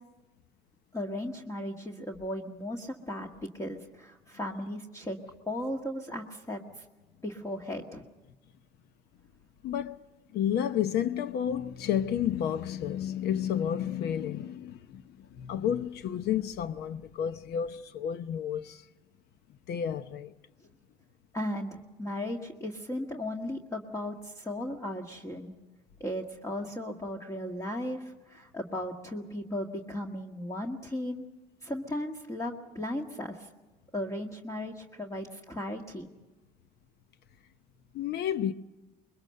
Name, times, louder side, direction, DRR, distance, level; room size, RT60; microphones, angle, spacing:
voice 1, 0.9-5.2 5.5-6.8 7.2-8.0 21.3-25.5 26.0-31.3 31.6-33.5 33.9-36.1, left 1 dB, 20° left, 1.8 m, -36 dB
voice 2, 9.6-10.0 10.3-18.9 19.7-20.3 37.9-38.5, left 9 dB, 70° left, 0.8 m, -31 dB
25.0 x 22.0 x 6.7 m
cardioid pair, 110°, 17 cm